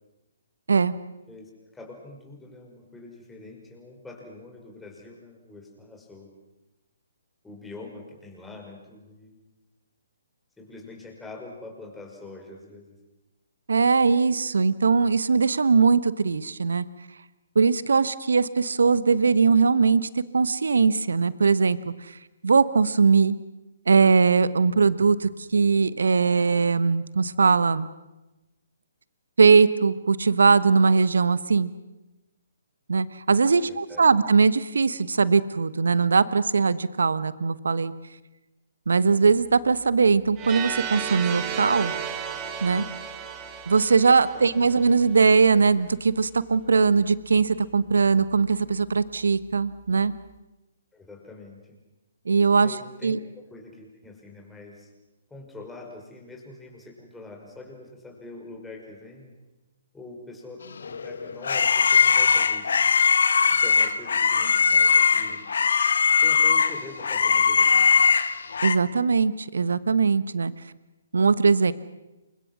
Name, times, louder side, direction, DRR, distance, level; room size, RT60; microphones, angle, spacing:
voice 1, 1.3-6.3 7.4-9.3 10.6-13.0 33.6-34.1 44.0-44.5 50.9-51.8 52.6-53.2 53.4-54.9 55.3-59.4 59.9-62.9 63.5-65.4 66.2-68.1, left 2 dB, 5° left, 0 dB, 5.6 m, -44 dB
voice 2, 13.7-16.8 17.5-21.9 22.4-23.3 23.9-27.9 29.4-31.7 32.9-37.9 38.9-41.9 42.6-42.8 43.7-50.1 52.3-52.7 53.0-53.2 68.6-70.5 71.1-71.7, right 5 dB, 65° right, 16 dB, 1.3 m, -20 dB
sound 1, 40.4-45.2, right 8 dB, 25° right, 2.6 m, -34 dB
sound 2, 60.8-68.8, left 6 dB, 60° left, 1.4 m, -20 dB
29.0 x 24.5 x 6.2 m, 1.0 s
figure-of-eight pair, 130°, 0 cm